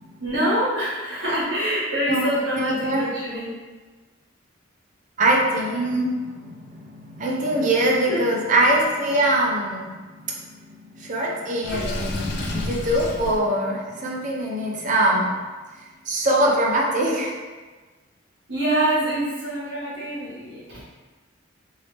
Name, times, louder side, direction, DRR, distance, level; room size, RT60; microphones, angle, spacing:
voice 1, 0.2-3.5 7.8-8.2 16.4-16.5 18.5-20.8, right 1 dB, 80° right, -10 dB, 1.3 m, -25 dB
voice 2, 5.2-10.3 10.9-15.4 16.1-17.4, right 1 dB, 40° right, -2 dB, 0.6 m, -23 dB
Water / Sink (filling or washing), 11.6-13.4, left 1 dB, 60° left, 0.5 m, -29 dB
3.2 x 2.7 x 3.2 m, 1.3 s
head